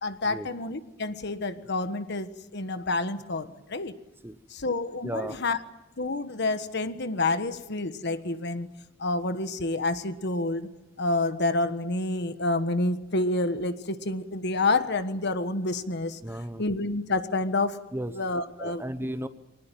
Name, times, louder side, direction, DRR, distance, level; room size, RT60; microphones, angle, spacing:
voice 1, 0.0-3.9 4.5-5.6 6.0-8.7 9.0-10.7 11.0-16.2 16.6-17.8 18.1-18.8, left 2 dB, 60° left, 10 dB, 1.4 m, -28 dB
voice 2, 5.0-5.4 16.2-16.6 17.9-18.1 18.6-19.3, right 1 dB, 10° right, 11 dB, 0.9 m, -34 dB
24.5 x 19.5 x 9.1 m, 0.97 s
head